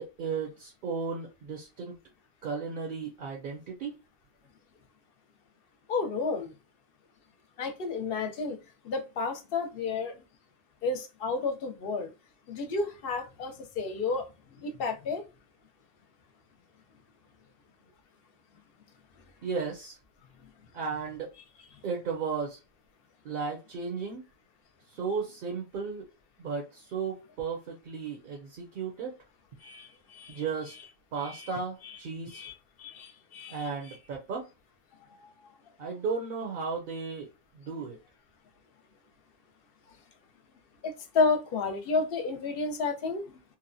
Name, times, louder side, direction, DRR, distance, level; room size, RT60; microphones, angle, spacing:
voice 1, 0.0-1.9 2.4-3.9 19.4-20.0 20.7-21.3 21.8-22.6 23.2-24.2 24.9-26.1 26.4-29.1 30.3-30.7 31.1-32.4 33.5-34.5 35.8-37.3 37.5-38.0, right 5 dB, 60° right, 0.7 m, -34 dB
voice 2, 5.9-6.5 7.6-8.6 8.8-10.1 10.8-12.1 12.5-14.3 14.6-15.2 29.6-30.4 31.2-31.5 31.8-32.0 32.3-32.5 32.8-34.0 37.8-37.9 40.8-43.2, left 4 dB, 65° left, 0.7 m, -31 dB
2.8 x 2.1 x 2.5 m
omnidirectional pair, 1.1 m